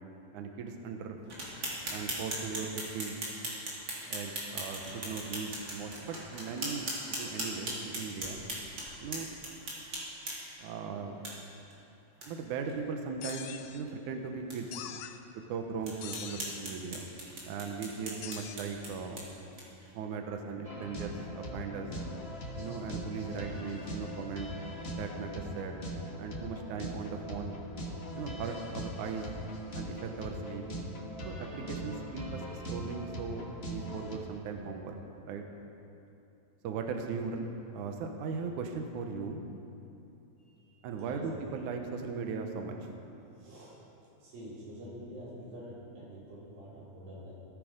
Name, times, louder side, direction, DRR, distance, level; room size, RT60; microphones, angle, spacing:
voice 1, 0.3-1.2 1.9-3.2 4.1-8.4 9.0-9.3 10.6-11.2 12.3-14.7 15.5-17.1 17.4-19.3 19.9-21.9 22.6-24.5 24.9-25.8 26.2-27.6 28.1-29.3 29.7-30.6 31.3-35.0 35.3-35.4 36.6-39.5 40.8-42.8, right 5 dB, 70° right, 4 dB, 2.2 m, -38 dB
sound 1, 1.3-10.6 11.2-11.3 11.7-11.8 12.2-12.3 12.7-12.8 13.1-13.4 13.9-14.0 14.5-14.6 15.1-15.2 15.8-19.9, right 1 dB, 35° right, 3.1 m, -39 dB
sound 2, 13.2-13.8 14.7-15.2 16.0-16.6 18.2-18.6, left 10 dB, 80° left, 1.6 m, -43 dB
sound 3, 20.6-34.2, equal, 55° left, 0.7 m, -41 dB
voice 2, 40.4-41.3 43.3-43.8 44.2-47.3, equal, 90° right, -8 dB, 6.0 m, -47 dB
17.5 x 13.5 x 5.1 m, 2.8 s
omnidirectional pair, 4.1 m